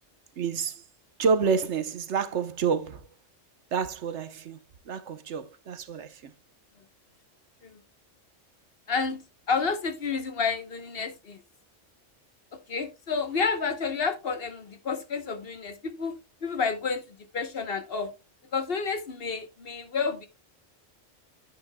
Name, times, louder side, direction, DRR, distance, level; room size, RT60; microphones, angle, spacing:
voice 1, 0.4-0.8 1.2-3.1 3.7-4.6 4.9-6.3, right 5 dB, 70° right, 1.1 m, -28 dB
voice 2, 8.9-9.2 9.5-11.4 12.5-18.1 18.5-20.3, left 5 dB, 50° left, 1.1 m, -30 dB
10.0 x 8.9 x 2.2 m
omnidirectional pair, 1.3 m